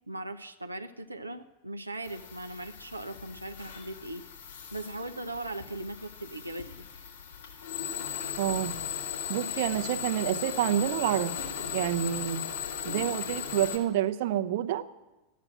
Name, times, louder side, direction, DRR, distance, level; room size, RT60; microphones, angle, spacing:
voice 1, 0.1-4.2 4.7-6.7, right 1 dB, 85° right, 6 dB, 0.7 m, -39 dB
sound 1, 2.0-13.8, left 8 dB, 65° left, 2.9 m, -37 dB
voice 2, 8.4-8.7 9.3-11.4 11.7-12.4 12.8-14.9, right 11 dB, 50° right, 8 dB, 0.9 m, -28 dB
14.0 x 9.4 x 8.6 m, 1.1 s
figure-of-eight pair, 90°, 0 cm